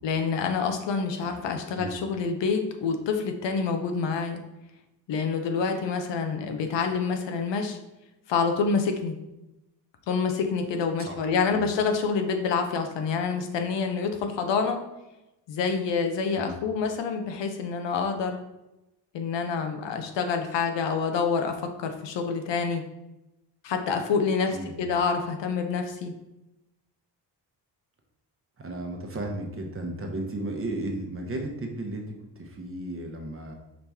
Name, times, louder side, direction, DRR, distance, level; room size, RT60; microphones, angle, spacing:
voice 1, 0.0-4.4 5.1-7.8 8.3-9.2 10.1-14.8 15.5-18.4 19.1-22.9 23.6-26.1, left 5 dB, 80° left, 5 dB, 0.7 m, -27 dB
voice 2, 24.5-24.9 28.6-33.5, right 1 dB, 30° right, 2 dB, 0.9 m, -34 dB
5.0 x 2.9 x 3.5 m, 0.95 s
cardioid pair, 85°, 43 cm